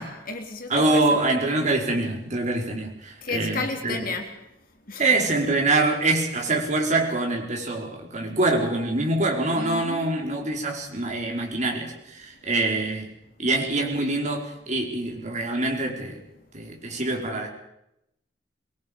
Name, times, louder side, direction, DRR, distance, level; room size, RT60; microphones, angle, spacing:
voice 1, 0.0-1.2 3.2-4.4 4.9-5.2 9.5-10.3, left 3 dB, 55° left, 4 dB, 3.3 m, -33 dB
voice 2, 0.7-3.9 5.0-13.1 13.4-16.2 16.5-17.5, right 2 dB, 40° right, 1 dB, 4.7 m, -25 dB
24.5 x 23.0 x 5.4 m, 0.83 s
head